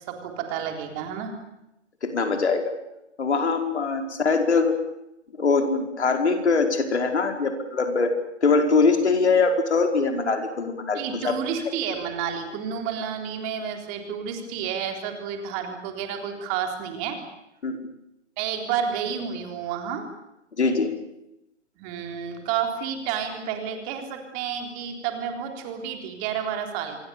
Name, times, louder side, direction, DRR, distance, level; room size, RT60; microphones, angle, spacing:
voice 1, 0.1-1.3 10.9-17.2 18.4-20.1 21.8-27.0, right 7 dB, 25° right, 4 dB, 3.8 m, -30 dB
voice 2, 2.0-2.7 3.2-4.8 5.4-8.1 8.4-11.0 11.2-11.4 17.6-17.8 20.6-20.9, left 4 dB, 65° left, 5 dB, 5.1 m, -22 dB
27.0 x 23.0 x 7.0 m, 0.86 s
figure-of-eight pair, 140°, 36 cm